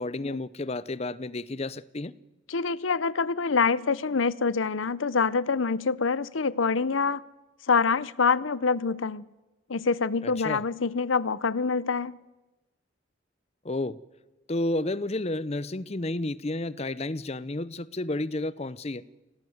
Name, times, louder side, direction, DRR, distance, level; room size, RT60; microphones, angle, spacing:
voice 1, 0.0-2.1 10.2-10.6 13.6-14.0 14.5-19.0, left 2 dB, 30° left, 0.7 m, -31 dB
voice 2, 2.5-7.2 7.7-9.3 9.7-12.2, left 5 dB, 85° left, 0.7 m, -26 dB
27.0 x 17.5 x 7.9 m
head